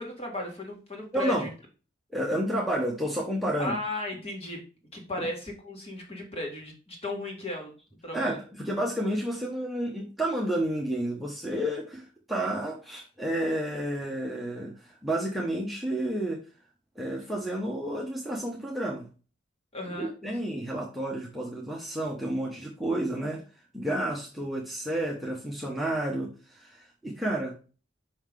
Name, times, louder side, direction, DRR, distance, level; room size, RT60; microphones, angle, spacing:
voice 1, 0.0-1.5 3.6-4.6 4.9-7.7 8.0-8.4 19.7-20.1, left 1 dB, 30° left, 0 dB, 2.0 m, -35 dB
voice 2, 1.1-1.5 2.1-3.8 5.2-5.3 8.1-16.4 17.0-19.1 19.9-23.4 23.7-27.5, right 1 dB, ahead, -3 dB, 1.0 m, -31 dB
5.6 x 5.6 x 3.6 m, 0.35 s
head